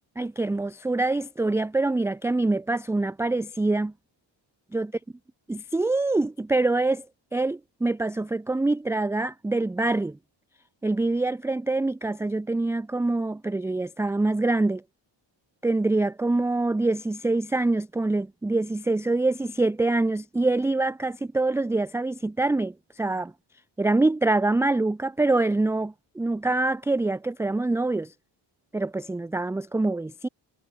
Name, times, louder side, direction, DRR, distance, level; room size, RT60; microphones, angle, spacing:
voice 1, 0.2-3.9 4.7-4.9 5.7-7.1 7.3-10.2 10.8-14.8 15.6-23.3 23.8-28.1 28.7-30.3, right 2 dB, 5° right, 0.4 m, -25 dB
cardioid pair, 100°, 46 cm